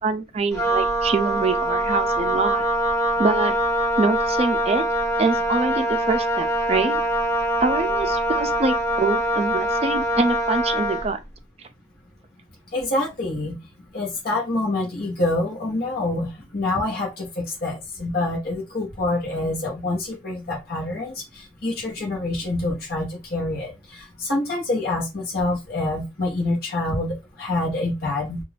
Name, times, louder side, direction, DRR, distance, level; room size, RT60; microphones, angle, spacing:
voice 1, 0.0-2.6 3.2-3.5 4.0-4.8 5.2-7.0 7.6-11.2, right 3 dB, 35° right, 0.4 m, -24 dB
Wind instrument woodwind instrument, 0.5-11.1, right 1 dB, 15° left, 0.9 m, -23 dB
voice 2, 12.7-13.6 13.9-28.4, left 2 dB, 55° left, 0.9 m, -26 dB
2.5 x 2.3 x 3.2 m
head